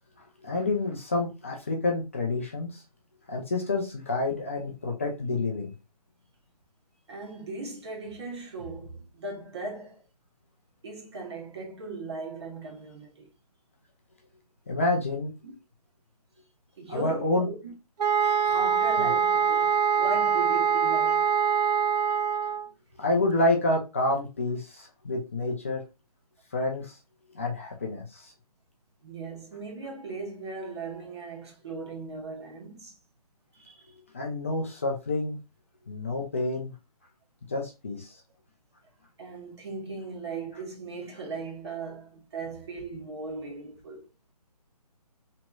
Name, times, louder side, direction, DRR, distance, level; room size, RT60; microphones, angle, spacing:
voice 1, 0.4-2.8 3.3-5.7 14.7-15.3 16.9-17.5 19.0-19.1 23.0-25.8 26.5-26.9 27.3-28.3 34.1-35.4 35.9-36.7 37.5-38.1, left 2 dB, 20° left, 0.4 m, -28 dB
voice 2, 7.1-10.0 10.8-13.3 15.4-15.5 16.8-17.7 18.2-21.4 29.0-33.0 33.5-33.8 39.2-44.1, right 3 dB, 40° right, 0.9 m, -38 dB
sound 1, 18.0-22.7, right 7 dB, 80° right, 0.4 m, -24 dB
3.0 x 2.8 x 2.2 m
hypercardioid pair, 160°, 21 cm